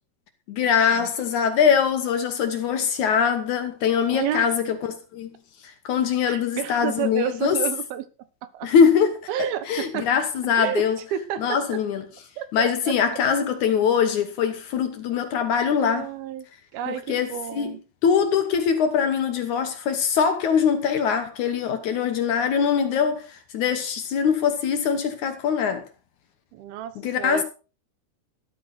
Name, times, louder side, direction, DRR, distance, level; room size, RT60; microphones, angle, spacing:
voice 1, 0.5-5.3 5.9-7.6 8.6-9.2 9.7-11.0 11.4-12.0 12.5-16.1 16.9-17.3 17.6-17.7 18.0-25.8 27.0-27.4, left 7 dB, 65° left, 2.2 m, -22 dB
voice 2, 4.1-4.5 6.3-8.1 8.5-8.7 9.3-10.1 10.6-11.6 12.4-12.9 15.8-16.5 16.7-17.8 26.5-27.4, right 10 dB, 80° right, 3.0 m, -30 dB
13.0 x 13.0 x 4.1 m
omnidirectional pair, 4.3 m